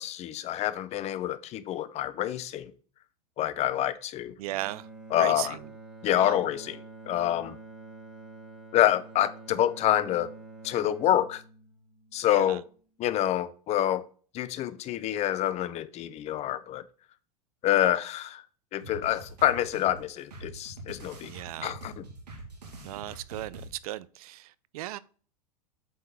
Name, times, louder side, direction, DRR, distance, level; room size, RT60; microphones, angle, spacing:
voice 1, 0.0-2.7 3.4-4.3 5.1-5.6 6.0-6.8 7.1-7.6 8.7-10.3 10.6-11.4 12.1-12.6 13.0-14.0 14.3-16.8 17.6-18.4 18.7-21.3 21.6-22.0, left 12 dB, 35° left, 0.6 m, -27 dB
voice 2, 4.4-4.9 5.1-5.7 6.1-6.4 12.3-12.6 21.3-21.7 22.8-25.0, right 16 dB, 65° right, 0.5 m, -37 dB
Bowed string instrument, 4.5-12.7, right 3 dB, ahead, 2.0 m, -48 dB
sound 1, 18.8-23.7, right 2 dB, 90° right, 1.9 m, -44 dB
8.4 x 3.8 x 4.2 m
hypercardioid pair, 100°, 20 cm